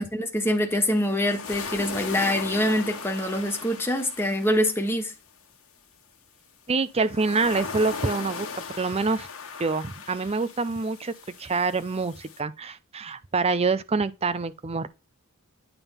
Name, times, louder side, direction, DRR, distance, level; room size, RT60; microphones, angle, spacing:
voice 1, 0.0-5.1, left 1 dB, 10° left, 1.5 m, -25 dB
sound 1, 0.9-5.0 7.0-12.4, left 5 dB, 75° left, 1.6 m, -38 dB
voice 2, 6.7-8.5 8.8-9.3 9.6-14.9, right 4 dB, 30° right, 0.5 m, -26 dB
9.1 x 3.6 x 5.7 m
head